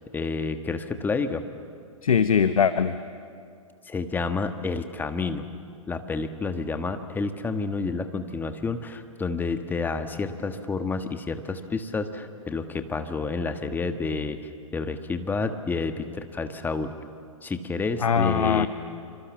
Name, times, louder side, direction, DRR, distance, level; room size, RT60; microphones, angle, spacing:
voice 1, 0.1-1.4 3.8-5.5 5.9-16.9 17.4-18.7, left 4 dB, 10° left, 8 dB, 1.5 m, -29 dB
voice 2, 2.0-3.0 18.0-18.7, left 7 dB, 75° left, 12 dB, 1.0 m, -21 dB
27.0 x 25.5 x 7.4 m, 2.3 s
hypercardioid pair, 120°, 18 cm